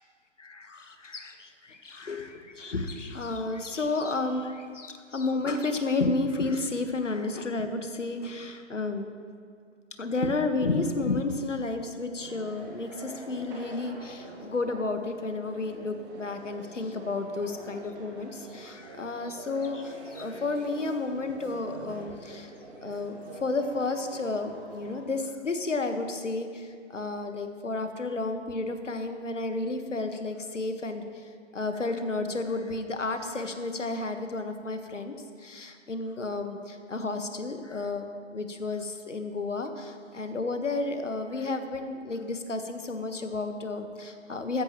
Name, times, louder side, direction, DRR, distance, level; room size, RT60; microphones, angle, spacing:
voice 1, 0.4-9.1 10.0-22.5 22.8-44.6, left 3 dB, 75° left, 7 dB, 1.4 m, -32 dB
sound 1, 12.2-25.0, right 2 dB, 15° right, 1.5 m, -46 dB
14.5 x 14.0 x 3.0 m, 2.2 s
figure-of-eight pair, 135°, 37 cm